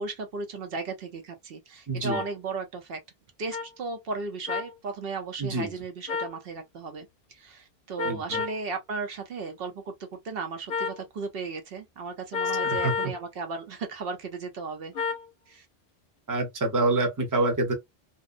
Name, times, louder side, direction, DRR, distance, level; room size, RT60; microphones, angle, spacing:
voice 1, 0.0-3.0 3.4-14.9 15.5-15.7, right 4 dB, 70° right, 0.8 m, -35 dB
voice 2, 1.9-2.2 5.4-5.7 8.0-8.4 12.7-12.9 16.3-17.7, right 2 dB, 20° right, 0.6 m, -26 dB
sound 1, 2.1-2.3 3.5-3.7 4.5-4.7 6.1-6.4 8.0-8.6 10.7-11.0 12.3-13.2 15.0-15.3, left 6 dB, 65° left, 0.7 m, -30 dB
2.6 x 2.0 x 2.4 m
omnidirectional pair, 1.0 m